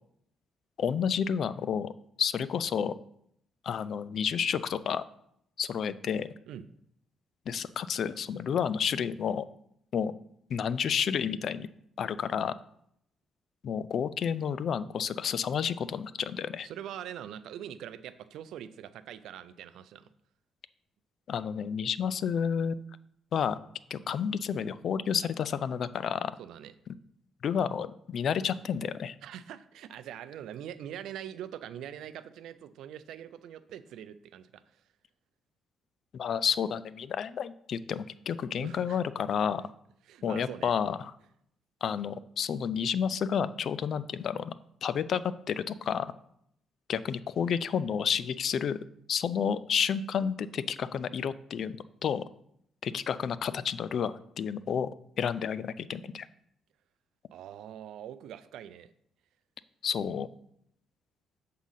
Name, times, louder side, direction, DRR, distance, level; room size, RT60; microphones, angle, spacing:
voice 1, 0.8-1.9 2.2-2.9 3.6-5.0 5.6-6.3 7.5-9.4 9.9-10.1 10.5-11.7 12.0-12.5 13.6-16.7 21.3-22.9 23.3-23.6 23.9-26.3 26.9-27.0 27.4-29.2 36.1-39.6 40.2-41.1 41.8-44.5 44.8-45.2 45.5-46.1 46.9-48.8 49.1-52.2 52.8-54.9 55.2-56.3 59.8-60.3, left 7 dB, 60° left, 15 dB, 0.3 m, -30 dB
voice 2, 16.6-20.1 26.4-26.7 29.2-34.8 38.6-39.0 40.1-40.7 57.3-58.9, right 10 dB, 80° right, 13 dB, 0.4 m, -43 dB
7.2 x 3.8 x 5.6 m, 0.72 s
cardioid pair, 90°, 0 cm